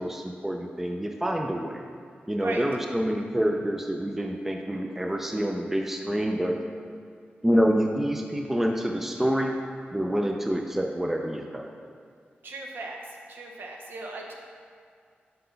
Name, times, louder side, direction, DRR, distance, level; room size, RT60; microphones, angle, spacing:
voice 1, 0.0-1.8 2.3-6.6 7.4-9.5 9.9-11.7, equal, 10° right, 2 dB, 0.4 m, -27 dB
voice 2, 12.4-13.0 13.3-14.3, right 2 dB, 70° right, 0 dB, 0.8 m, -37 dB
5.6 x 4.0 x 5.2 m, 2.2 s
wide cardioid pair, 140°, 4 cm